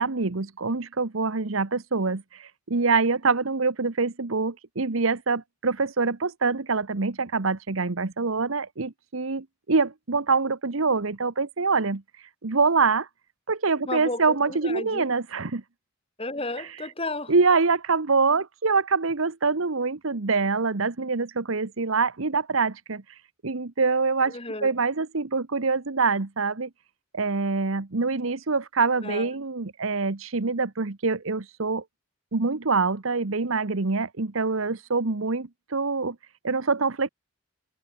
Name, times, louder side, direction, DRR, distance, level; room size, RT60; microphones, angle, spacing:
voice 1, 0.0-12.0 12.4-13.1 13.5-15.6 17.3-23.0 23.4-26.7 27.1-31.8 32.3-36.2 36.4-37.1, right 4 dB, 75° right, 1.1 m, -25 dB
voice 2, 13.9-15.1 16.2-17.3 24.3-24.7 29.0-29.3, left 2 dB, 25° left, 6.4 m, -33 dB
head